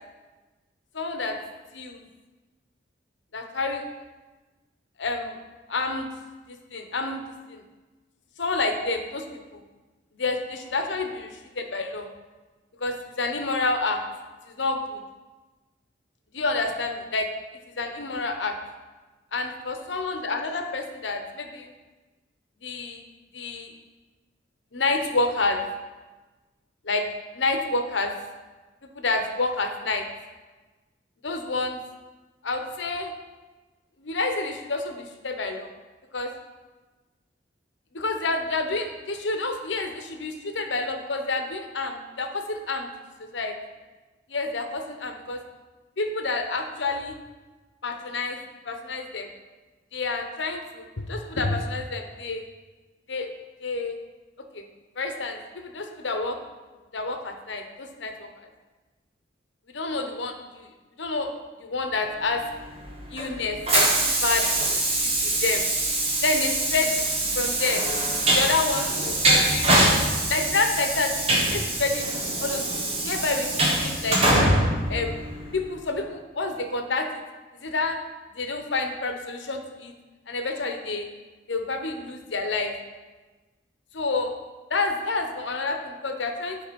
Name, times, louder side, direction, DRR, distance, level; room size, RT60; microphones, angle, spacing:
voice 1, 0.9-1.4 1.7-2.0 3.3-3.8 5.0-5.4 5.7-6.1 6.5-7.2 7.5-7.6 8.4-9.6 10.1-12.1 12.8-14.0 14.5-15.0 16.3-17.3 17.8-18.6 19.3-21.7 22.6-23.0 23.3-23.7 24.7-25.6 26.8-27.1 27.3-28.1 28.9-30.1 31.2-31.8 32.4-33.1 34.0-35.7 36.1-36.3 37.9-42.9 43.3-43.5 44.3-45.4 46.0-47.2 47.8-48.4 48.7-49.3 49.9-52.4 53.1-53.3 53.6-54.0 54.5-54.7 55.0-56.4 56.9-58.3 59.7-60.7 61.0-61.3 61.6-62.4 63.1-64.5 64.8-65.6 66.2-67.1 67.3-67.8 68.3-69.7 70.3-72.1 72.4-72.7 73.0-74.2 74.9-75.2 75.5-77.2 77.5-78.0 78.3-79.9 80.3-81.1 81.5-82.7 83.9-84.3 84.7-86.6, left 3 dB, 90° left, 5 dB, 1.0 m, -28 dB
Train, 62.5-75.7, right 1 dB, 35° right, 1.5 m, -24 dB
9.3 x 5.0 x 5.3 m, 1.2 s
head